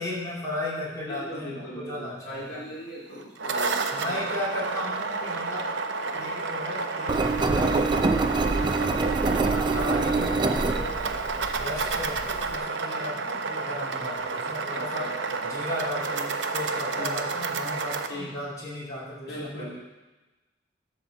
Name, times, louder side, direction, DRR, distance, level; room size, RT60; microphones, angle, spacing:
voice 1, 0.0-2.6 3.9-5.7 6.1-9.1 9.4-11.0 11.6-15.1 15.4-19.8, left 1 dB, 20° left, -7 dB, 2.6 m, -35 dB
voice 2, 1.1-4.2 8.5-9.0 9.5-9.9 14.7-15.4 16.7-17.2 18.1-18.3 19.3-19.8, equal, 60° left, -5 dB, 2.1 m, -39 dB
sound 1, 3.2-18.1, right 4 dB, 90° right, 0.7 m, -31 dB
Engine, 7.1-12.6, right 3 dB, 25° right, 0.4 m, -26 dB
11.5 x 4.3 x 6.8 m, 1.1 s
head